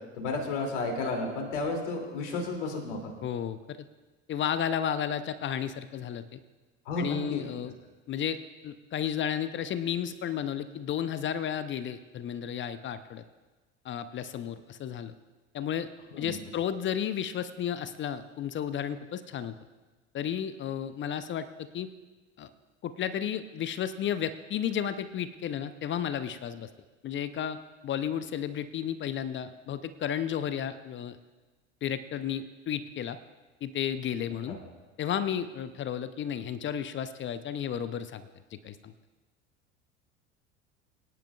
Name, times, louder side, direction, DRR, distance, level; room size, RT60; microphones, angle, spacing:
voice 1, 0.2-3.1 6.8-7.4 16.1-16.4 34.5-34.6, left 3 dB, 65° left, 1 dB, 2.7 m, -32 dB
voice 2, 3.2-3.8 4.3-6.4 7.0-7.7 8.1-8.4 8.6-13.2 13.8-15.1 15.5-15.9 16.2-19.5 20.1-21.5 21.7-21.9 22.4-22.5 22.8-26.7 27.0-27.6 27.8-31.2 31.8-33.2 33.6-34.6 35.0-38.3 38.6-38.9, left 9 dB, 30° left, 12 dB, 0.6 m, -33 dB
22.5 x 11.0 x 2.4 m, 1.2 s
figure-of-eight pair, 70°, 37 cm